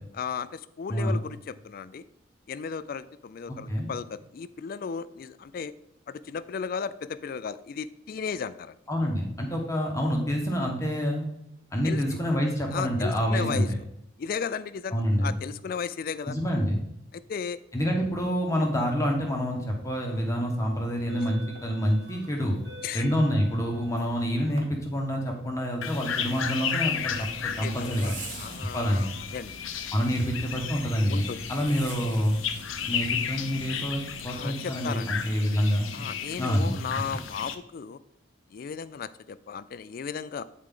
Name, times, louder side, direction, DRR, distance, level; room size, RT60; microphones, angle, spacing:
voice 1, 0.1-2.0 2.5-5.7 6.1-8.8 11.8-12.0 12.7-13.7 14.2-16.4 17.1-17.6 22.8-23.1 27.6-29.6 31.1-31.5 34.3-35.1 35.9-38.0 38.5-40.4, left 6 dB, 45° left, 16 dB, 0.3 m, -35 dB
voice 2, 3.5-3.9 8.9-11.3 11.7-13.6 14.9-15.3 16.3-16.8 17.7-22.6 22.9-28.1 28.7-29.0 29.9-32.4 32.8-35.9 36.4-36.8 37.1-37.2, equal, 15° left, 0 dB, 1.0 m, -27 dB
sound 1, 19.8-20.1 20.8-24.6, right 2 dB, 55° right, 1.2 m, -48 dB
sound 2, 25.8-37.6, left 7 dB, 90° left, 0.6 m, -34 dB
Zipper (clothing), 26.8-34.3, right 4 dB, 40° right, 0.9 m, -46 dB
8.6 x 4.6 x 3.7 m, 0.79 s
head